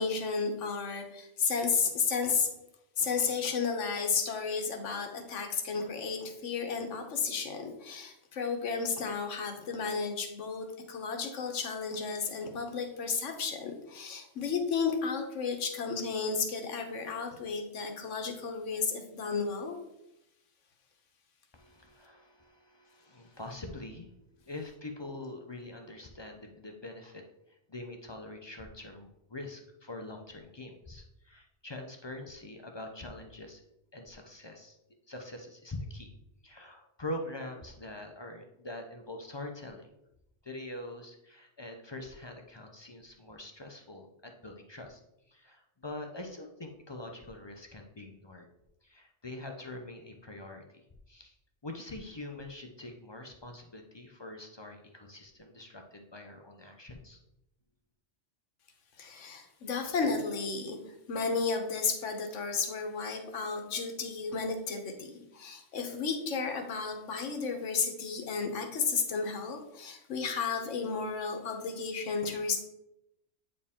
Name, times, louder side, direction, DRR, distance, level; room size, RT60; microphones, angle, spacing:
voice 1, 0.0-2.5 3.0-19.8 59.0-60.8 61.1-72.6, left 5 dB, 85° left, 4 dB, 1.3 m, -33 dB
voice 2, 21.5-24.1 24.4-33.6 33.9-34.8 35.1-36.1 36.4-39.9 40.4-45.0 45.3-48.5 48.8-51.3 51.6-57.2, left 2 dB, 30° left, 3 dB, 0.5 m, -44 dB
8.5 x 4.5 x 3.6 m, 0.86 s
omnidirectional pair, 1.2 m